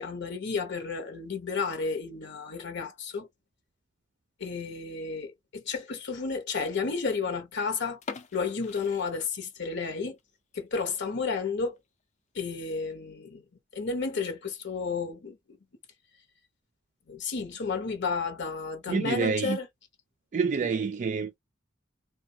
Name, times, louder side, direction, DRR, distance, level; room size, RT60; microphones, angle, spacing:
voice 1, 0.0-3.3 4.4-8.0 8.3-10.2 10.5-11.8 12.3-13.4 13.7-15.6 17.1-19.7, left 4 dB, 65° left, 0.9 m, -32 dB
sound 1, 7.9-9.9 10.2-10.3 10.8-11.0 11.4-11.5 11.8-11.9 12.6-12.9, left 4 dB, 35° left, 0.5 m, -43 dB
voice 2, 18.9-19.6 20.3-21.4, right 5 dB, 40° right, 0.3 m, -27 dB
3.6 x 2.3 x 2.7 m
head